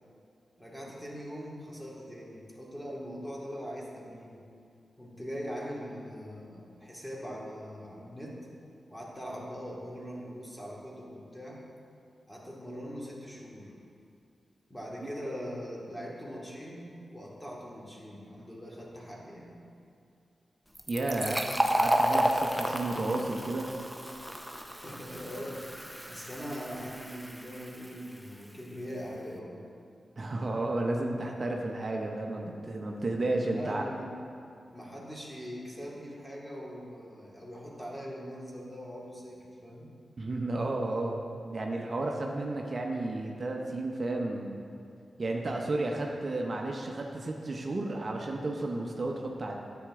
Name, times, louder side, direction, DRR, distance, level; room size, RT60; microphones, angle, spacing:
voice 1, 0.6-4.4 5.0-8.4 8.9-11.6 12.3-13.7 14.7-19.5 24.7-29.6 33.4-34.1 34.7-39.9, equal, 15° left, -4 dB, 2.2 m, -41 dB
Fill (with liquid), 20.7-28.1, equal, ahead, 0.8 m, -32 dB
voice 2, 20.9-23.7 30.2-33.8 40.2-44.6 45.2-49.6, right 2 dB, 50° right, 1 dB, 0.8 m, -32 dB
9.8 x 7.9 x 3.7 m, 2.4 s
cardioid pair, 50°, 0 cm